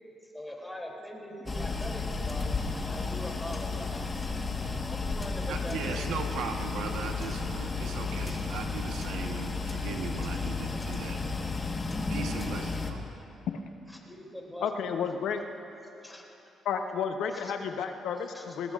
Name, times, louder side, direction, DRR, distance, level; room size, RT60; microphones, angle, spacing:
voice 1, 0.2-2.5 2.8-4.0 4.8-6.1 8.2-8.5 10.2-10.3 13.9-14.7 16.0-16.3 17.3-17.5 18.3-18.6, left 1 dB, 10° left, -1 dB, 2.8 m, -42 dB
sound 1, 1.5-12.9, left 4 dB, 25° left, 1.3 m, -33 dB
voice 2, 5.5-11.2 12.1-13.1, right 5 dB, 85° right, 4 dB, 1.1 m, -38 dB
voice 3, 14.6-15.4 16.6-18.7, left 7 dB, 75° left, 6 dB, 0.8 m, -32 dB
21.0 x 19.0 x 2.5 m, 3.0 s
cardioid pair, 90°, 0 cm